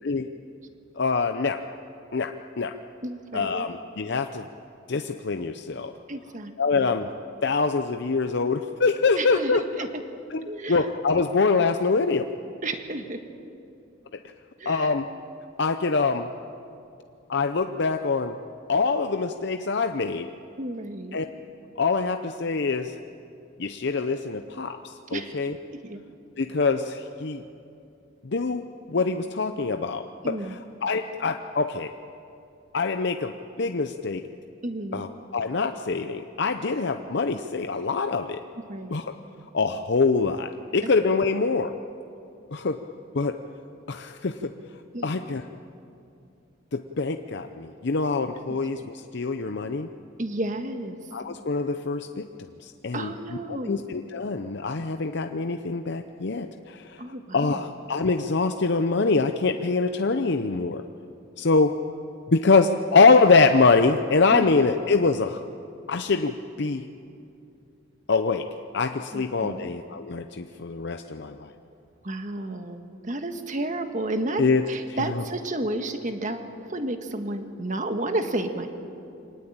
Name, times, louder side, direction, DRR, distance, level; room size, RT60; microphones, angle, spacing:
voice 1, 1.0-1.6 2.1-2.7 3.3-4.5 4.9-5.9 6.6-7.1 7.4-9.6 10.3-12.3 14.7-15.1 15.6-16.3 17.3-18.4 18.7-20.3 21.1-21.3 21.8-22.9 23.6-25.5 26.4-27.4 28.2-31.9 32.7-34.3 34.9-38.4 38.9-39.1 39.5-41.7 42.5-42.8 43.1-43.4 43.9-44.5 45.0-45.4 46.7-49.9 51.1-53.1 53.5-57.0 57.3-60.8 61.4-61.8 62.3-65.4 65.9-66.9 68.1-68.5 68.7-71.5 74.4-74.6 75.0-75.2, left 4 dB, 60° left, 7 dB, 0.7 m, -24 dB
voice 2, 3.0-3.7 6.1-7.0 9.1-10.0 10.5-10.8 12.6-13.2 14.6-14.9 20.6-21.2 25.1-25.4 25.7-26.0 30.2-30.6 34.6-35.1 38.7-39.0 40.8-40.9 44.9-45.1 48.5-48.6 50.2-51.0 52.9-53.8 57.0-57.7 64.3-64.5 69.1-69.7 72.0-78.7, right 1 dB, 40° right, 6 dB, 1.6 m, -32 dB
24.5 x 19.0 x 8.8 m, 2.6 s
head